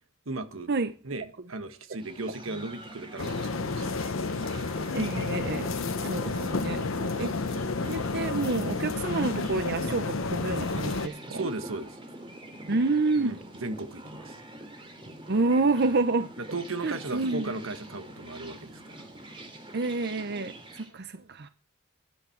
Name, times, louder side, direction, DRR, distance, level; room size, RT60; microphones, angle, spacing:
voice 1, 0.2-0.7 1.0-4.1 6.9-7.4 11.3-12.0 13.2-14.4 16.4-19.1, right 2 dB, 85° right, 1.4 m, -37 dB
sound 1, 1.9-20.9, right 1 dB, 25° right, 3.1 m, -44 dB
sound 2, 3.2-11.1, left 3 dB, 80° left, 0.9 m, -31 dB
voice 2, 4.9-5.7 6.0-6.8 7.2-11.4 12.7-13.3 15.3-16.3 16.8-17.5 19.7-21.5, right 3 dB, 55° right, 0.7 m, -28 dB
13.0 x 11.0 x 4.5 m
head